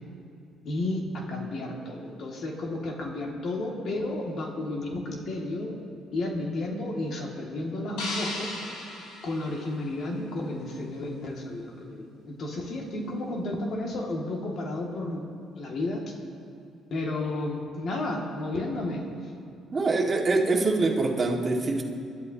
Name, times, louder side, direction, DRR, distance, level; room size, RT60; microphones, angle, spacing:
voice 1, 0.6-5.7 6.1-8.5 9.2-15.2 15.6-16.0 16.9-19.0, left 2 dB, 60° left, -1 dB, 2.2 m, -32 dB
sound 1, 8.0-10.3, left 2 dB, 90° left, 2.6 m, -36 dB
voice 2, 19.7-21.8, right 3 dB, 35° right, -1 dB, 1.9 m, -24 dB
23.0 x 12.0 x 2.9 m, 2.5 s
cardioid pair, 95°, 0 cm